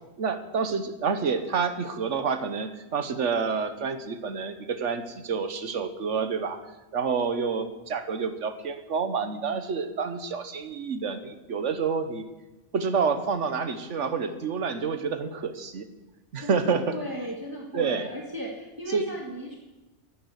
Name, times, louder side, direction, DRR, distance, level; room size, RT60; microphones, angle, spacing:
voice 1, 0.2-6.6 6.9-12.3 12.7-15.9 16.3-17.0 17.7-18.1 18.9-19.0, right 5 dB, 85° right, 10 dB, 1.5 m, -28 dB
voice 2, 16.4-19.6, right 1 dB, 20° right, -1 dB, 1.8 m, -36 dB
11.0 x 11.0 x 8.1 m, 1.1 s
omnidirectional pair, 1.2 m